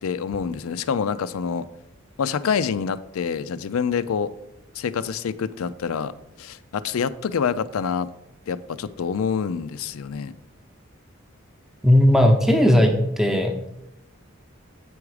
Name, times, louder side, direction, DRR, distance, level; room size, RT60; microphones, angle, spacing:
voice 1, 0.0-1.7 2.2-4.3 4.7-6.1 6.4-8.1 8.5-10.3, left 6 dB, 90° left, 15 dB, 0.4 m, -26 dB
voice 2, 11.8-13.5, left 1 dB, ahead, 4 dB, 0.7 m, -17 dB
7.8 x 4.9 x 4.8 m, 0.88 s
head